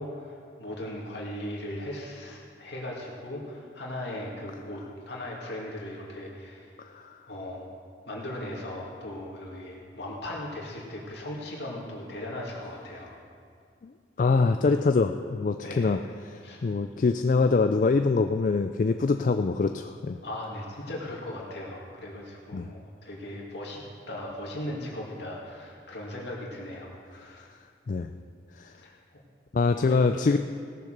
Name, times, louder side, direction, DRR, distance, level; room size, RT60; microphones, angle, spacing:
voice 1, 0.0-6.7 7.3-7.7 8.1-13.1 15.6-16.0 16.4-16.6 20.2-23.8 24.1-27.5 28.8-29.2 29.7-30.0, left 1 dB, 65° left, -3 dB, 2.5 m, -38 dB
voice 2, 14.2-16.0 16.3-20.2 22.5-22.7 27.9-28.1 28.6-28.7 29.5-30.4, left 4 dB, 45° left, 7 dB, 0.3 m, -24 dB
17.5 x 6.9 x 6.6 m, 2.2 s
head